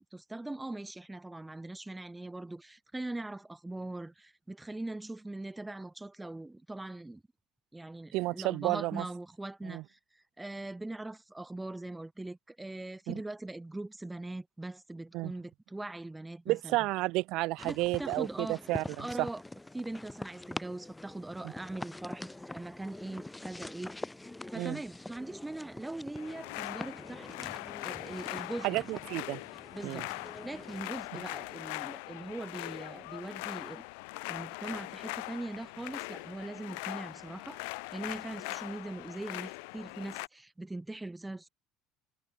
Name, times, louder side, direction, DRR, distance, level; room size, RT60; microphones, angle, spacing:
voice 1, 0.0-7.2 7.7-16.8 17.6-18.6 19.0-19.4 19.7-24.0 24.5-27.3 27.8-28.8 29.7-30.1 30.4-33.8 34.3-37.6 37.9-41.5, right 2 dB, 10° right, 1.6 m, -41 dB
voice 2, 8.1-9.0 9.7-9.8 13.1-13.2 15.1-15.3 16.5-18.8 19.2-19.3 24.6-24.8 28.6-29.4 29.8-30.0, right 20 dB, 65° right, 0.5 m, -31 dB
sound 1, 17.6-30.9, left 2 dB, 10° left, 2.5 m, -45 dB
sound 2, 26.2-40.3, left 32 dB, 85° left, 6.4 m, -41 dB
cardioid pair, 125°, 0 cm